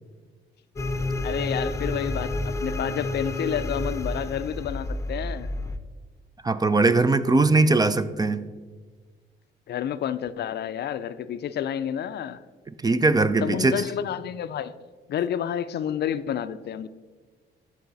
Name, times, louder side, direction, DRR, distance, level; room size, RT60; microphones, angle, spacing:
sound 1, 0.8-5.8, left 1 dB, 15° left, 0.7 m, -30 dB
voice 1, 1.2-5.5 9.7-12.4 13.4-14.7 15.1-16.9, left 9 dB, 55° left, 0.4 m, -30 dB
voice 2, 6.4-8.5 12.8-13.8, right 3 dB, 20° right, 0.4 m, -20 dB
13.5 x 4.8 x 4.0 m
cardioid pair, 90°, 20 cm